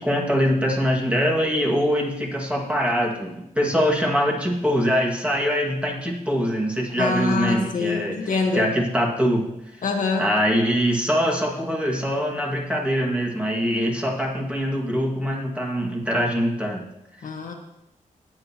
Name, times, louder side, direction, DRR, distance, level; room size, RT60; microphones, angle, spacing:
voice 1, 0.0-9.4 10.2-16.8, equal, 10° right, -2 dB, 2.1 m, -23 dB
voice 2, 7.0-8.7 9.8-10.2 17.2-17.5, left 4 dB, 70° left, 2 dB, 1.6 m, -24 dB
18.5 x 7.9 x 3.0 m, 0.83 s
wide cardioid pair, 100°, 14 cm